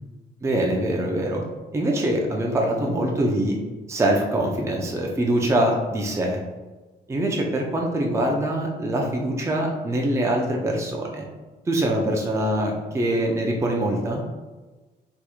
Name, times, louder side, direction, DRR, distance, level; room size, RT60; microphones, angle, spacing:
voice 1, 0.4-1.4 1.7-3.6 3.9-6.4 7.1-11.2 11.7-14.2, right 1 dB, 15° right, 0 dB, 0.4 m, -24 dB
3.4 x 3.0 x 2.4 m, 1.2 s
cardioid pair, 130°, 18 cm